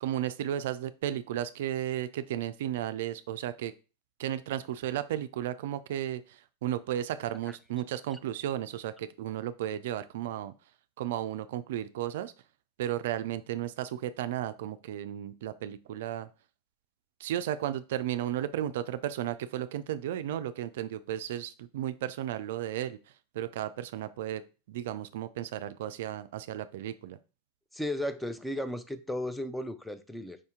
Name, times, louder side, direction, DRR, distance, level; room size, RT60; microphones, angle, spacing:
voice 1, 0.0-3.7 4.2-10.5 11.0-12.3 12.8-16.3 17.2-23.0 23.3-24.4 24.7-27.2, right 11 dB, 70° right, 13 dB, 0.3 m, -34 dB
voice 2, 27.7-30.4, left 1 dB, 5° left, 10 dB, 0.5 m, -35 dB
5.0 x 2.7 x 3.6 m, 0.33 s
hypercardioid pair, 100°, 0 cm